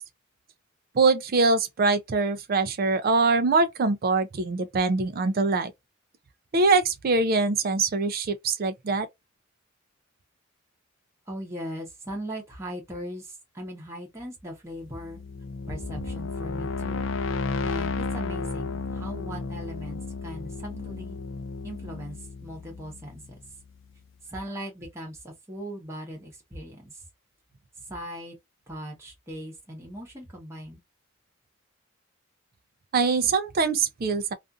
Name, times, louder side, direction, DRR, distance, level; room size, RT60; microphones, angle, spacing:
voice 1, 0.9-5.7 6.5-9.1 32.9-34.3, right 3 dB, 45° right, 0.4 m, -23 dB
voice 2, 11.3-15.2 15.7-17.0 17.6-21.2 21.6-23.2 24.2-27.0 27.8-28.4 28.7-30.8, equal, 15° right, 0.9 m, -39 dB
sound 1, 14.8-23.7, left 4 dB, 60° left, 0.4 m, -33 dB
2.5 x 2.4 x 2.3 m
head